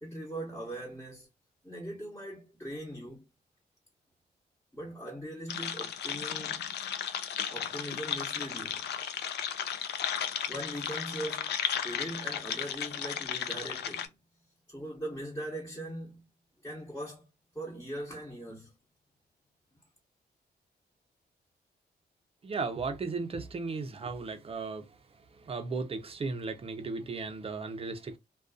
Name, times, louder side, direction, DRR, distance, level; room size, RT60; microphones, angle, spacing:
voice 1, 0.0-1.3 1.6-3.2 4.7-6.6 7.5-8.9 10.5-11.5 11.8-14.1 14.7-16.2 16.6-17.2 17.5-18.7, right 1 dB, 10° left, 1.0 m, -40 dB
sound 1, 5.5-14.1, left 8 dB, 80° left, 0.5 m, -35 dB
voice 2, 22.4-25.0 25.3-28.2, right 4 dB, 35° right, 0.6 m, -36 dB
2.5 x 2.3 x 2.4 m
cardioid pair, 95°, 17 cm